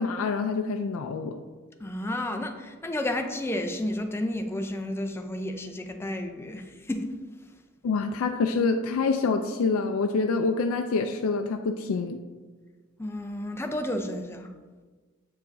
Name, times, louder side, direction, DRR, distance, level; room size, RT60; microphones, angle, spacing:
voice 1, 0.0-1.4 7.8-12.2, left 4 dB, 85° left, 5 dB, 0.4 m, -26 dB
voice 2, 1.8-7.1 13.0-14.5, left 1 dB, 10° left, 5 dB, 0.4 m, -31 dB
8.1 x 4.6 x 2.6 m, 1.4 s
head